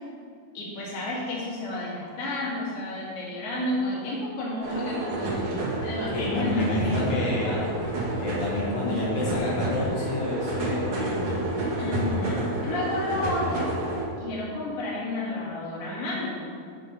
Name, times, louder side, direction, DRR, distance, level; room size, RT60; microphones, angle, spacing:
voice 1, 0.5-7.7 11.8-13.7 14.2-16.5, left 1 dB, 45° left, -5 dB, 2.6 m, -31 dB
sound 1, 4.6-14.1, right 2 dB, 55° right, 1.7 m, -29 dB
voice 2, 6.1-7.6 8.2-11.3, left 2 dB, 70° left, -5 dB, 2.8 m, -28 dB
7.7 x 7.7 x 5.2 m, 2.4 s
omnidirectional pair, 4.4 m